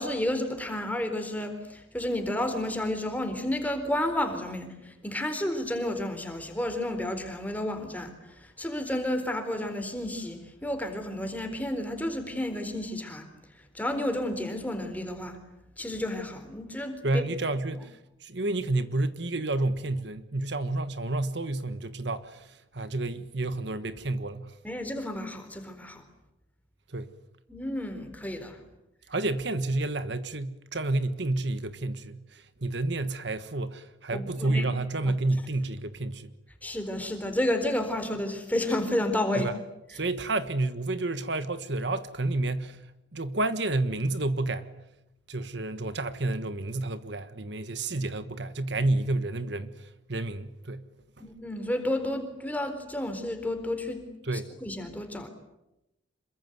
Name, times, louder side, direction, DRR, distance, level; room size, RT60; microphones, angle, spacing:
voice 1, 0.0-13.3 13.7-15.4 15.8-17.2 24.6-26.0 27.5-28.6 34.1-34.7 36.6-39.5 51.2-54.1 54.3-55.3, left 1 dB, 10° left, 4.1 m, -31 dB
voice 2, 17.0-24.5 26.9-27.1 29.1-36.3 39.4-39.5 39.9-42.8 43.1-44.7 45.3-50.8 54.2-54.5, right 2 dB, 60° right, 1.4 m, -30 dB
27.5 x 23.0 x 9.4 m
head